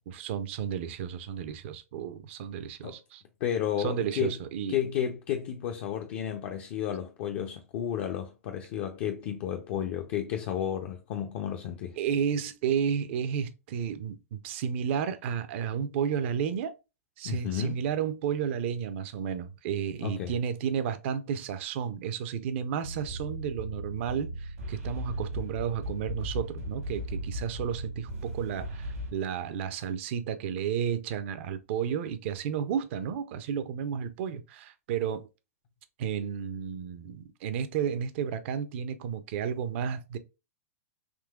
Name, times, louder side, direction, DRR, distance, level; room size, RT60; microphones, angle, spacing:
voice 1, 0.1-3.2 3.8-4.8 12.0-16.7 17.2-35.3 36.0-40.2, right 8 dB, 55° right, 0.5 m, -32 dB
voice 2, 3.4-4.4 4.7-12.0 17.2-17.8 20.0-20.3, left 9 dB, 50° left, 0.5 m, -32 dB
sound 1, 22.8-29.1, equal, 80° right, 1.4 m, -37 dB
3.7 x 2.7 x 2.3 m
hypercardioid pair, 115°, 8 cm